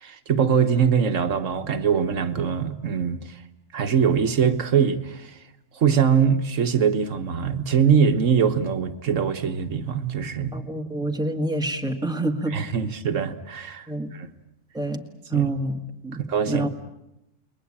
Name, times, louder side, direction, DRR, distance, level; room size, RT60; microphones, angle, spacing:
voice 1, 0.0-3.4 3.7-5.4 5.7-10.6 12.5-14.3 15.3-15.5 16.3-16.7, right 7 dB, 90° right, 1.7 m, -22 dB
voice 2, 10.5-12.6 13.9-14.1 14.7-15.0 15.3-16.2 16.5-16.7, right 1 dB, 5° right, 1.9 m, -27 dB
29.5 x 21.5 x 8.8 m
omnidirectional pair, 1.3 m